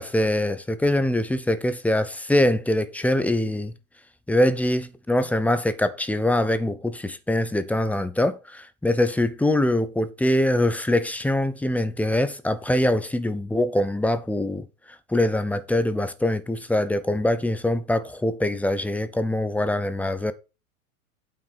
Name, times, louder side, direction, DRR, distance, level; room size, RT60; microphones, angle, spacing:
voice 1, 0.0-3.7 4.3-20.3, left 1 dB, 5° left, 0.6 m, -23 dB
9.1 x 5.2 x 5.8 m
hypercardioid pair, 115°, 44 cm